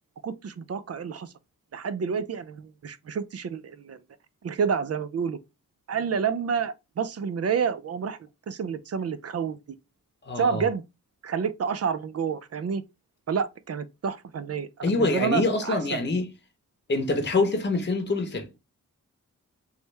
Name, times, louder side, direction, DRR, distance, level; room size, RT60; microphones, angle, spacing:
voice 1, 0.2-1.3 1.7-4.0 4.4-5.4 5.9-8.2 8.5-9.6 10.4-10.8 11.2-12.8 13.3-16.0, right 6 dB, 45° right, 0.5 m, -29 dB
voice 2, 10.2-10.7 14.8-16.3 16.9-18.6, left 3 dB, 30° left, 0.8 m, -25 dB
3.2 x 2.1 x 3.2 m
cardioid pair, 45°, 35 cm